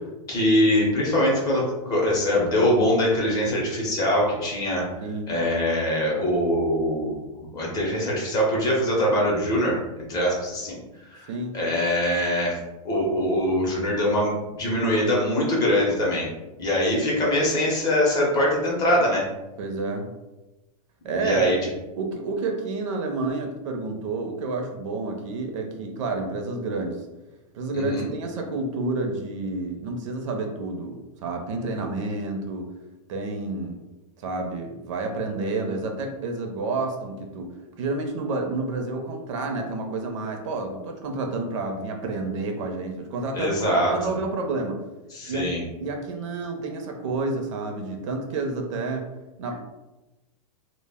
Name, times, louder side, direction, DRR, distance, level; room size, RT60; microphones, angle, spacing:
voice 1, 0.3-4.9 5.3-9.8 10.1-10.8 11.1-12.6 12.8-16.3 16.6-19.3 21.1-21.6 27.7-28.1 43.3-44.1 45.1-45.6, left 1 dB, 20° left, -3 dB, 0.6 m, -23 dB
voice 2, 5.0-5.3 11.3-11.6 19.6-20.1 21.0-21.6 21.9-27.0 27.5-32.7 33.1-33.8 34.2-37.5 37.8-44.8 45.2-45.5 45.8-49.1 49.4-49.6, right 3 dB, 55° right, 3 dB, 0.5 m, -29 dB
2.0 x 2.0 x 3.4 m, 1.0 s
supercardioid pair, 160°, 19 cm